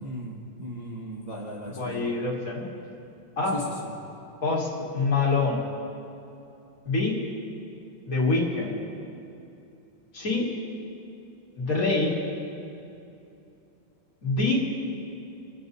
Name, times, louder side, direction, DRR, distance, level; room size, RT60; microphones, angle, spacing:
voice 1, 0.0-2.1 3.5-3.9, equal, 25° right, -3 dB, 1.2 m, -37 dB
voice 2, 1.7-2.6 3.4-3.6 4.4-5.6 6.8-7.2 8.1-8.8 10.1-10.5 11.6-12.1 14.2-14.6, left 3 dB, 45° left, -3 dB, 2.7 m, -25 dB
25.0 x 8.6 x 4.1 m, 2.7 s
omnidirectional pair, 2.1 m